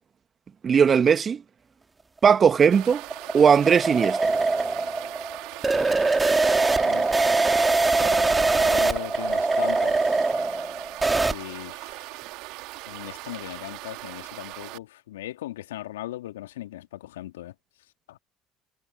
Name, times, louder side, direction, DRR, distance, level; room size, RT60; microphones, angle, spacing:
voice 1, 0.6-1.4 2.2-3.0 3.3-4.3, right 7 dB, 40° right, 1.5 m, -18 dB
sound 1, 2.4-11.3, right 3 dB, 20° right, 2.1 m, -23 dB
sound 2, 2.7-14.8, right 22 dB, 65° right, 2.0 m, -40 dB
voice 2, 6.8-7.2 8.0-10.2 11.3-12.2 12.9-17.5 18.1-18.2, left 14 dB, 80° left, 2.4 m, -38 dB
hypercardioid pair, 60°, 0 cm